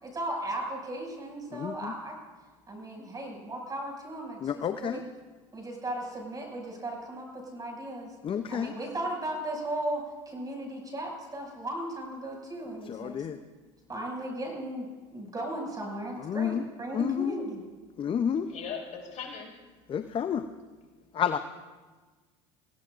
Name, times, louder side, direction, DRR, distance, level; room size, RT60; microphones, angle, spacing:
voice 1, 0.0-2.1 2.7-5.1 5.5-8.1 8.5-13.5 13.9-17.6, right 1 dB, 25° right, 0 dB, 6.4 m, -36 dB
voice 2, 1.5-1.9 4.4-5.0 8.2-8.7 12.9-13.4 16.2-16.6 16.9-17.3 18.0-18.5 19.9-20.5 21.1-21.4, left 8 dB, 35° left, 9 dB, 0.7 m, -30 dB
voice 3, 18.5-19.5 21.2-21.4, left 6 dB, 50° left, -1 dB, 5.9 m, -39 dB
25.0 x 16.5 x 2.6 m, 1.3 s
hypercardioid pair, 85°, 16 cm